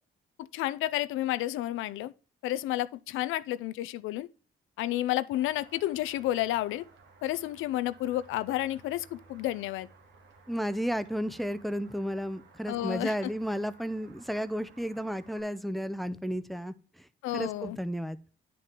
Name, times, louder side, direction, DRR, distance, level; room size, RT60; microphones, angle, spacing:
voice 1, 0.4-2.1 2.4-4.3 4.8-6.8 7.2-9.9 12.7-13.1 17.2-17.8, left 14 dB, 90° left, 0.5 m, -31 dB
sound 1, 5.3-15.4, right 4 dB, 70° right, 1.7 m, -57 dB
voice 2, 10.5-16.7 17.3-18.2, equal, ahead, 0.6 m, -33 dB
9.8 x 4.6 x 3.7 m
cardioid pair, 90°, 20 cm